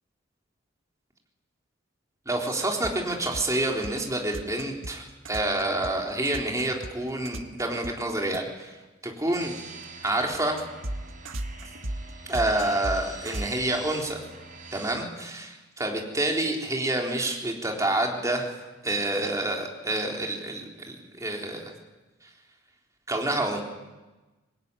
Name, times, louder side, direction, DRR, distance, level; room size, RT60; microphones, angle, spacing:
voice 1, 2.3-8.7 9.0-9.5 10.0-10.6 12.3-14.2 14.7-18.6 18.8-21.7 23.1-23.6, right 1 dB, 15° right, 1 dB, 3.8 m, -28 dB
sound 1, 2.5-7.9 8.3-8.4 9.3-13.5, right 1 dB, 85° right, 1.7 m, -35 dB
sound 2, 9.4-14.9, right 3 dB, 45° right, 5.1 m, -45 dB
25.5 x 21.0 x 9.8 m, 1.1 s
head